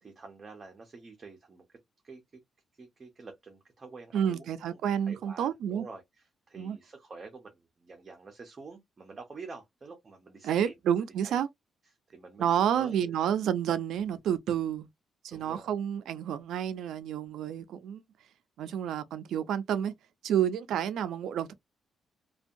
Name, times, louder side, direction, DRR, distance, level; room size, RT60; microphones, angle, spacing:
voice 1, 0.0-1.8 2.0-2.4 2.8-4.8 5.1-10.7 11.2-11.4 12.1-12.4 12.7-13.4 15.3-15.7, right 4 dB, 25° right, 0.5 m, -48 dB
voice 2, 4.1-5.9 6.6-6.8 10.4-11.5 12.4-14.9 15.2-18.0 18.6-19.9 20.2-21.5, right 9 dB, 75° right, 0.3 m, -29 dB
2.6 x 2.2 x 2.5 m
cardioid pair, 180°, 0 cm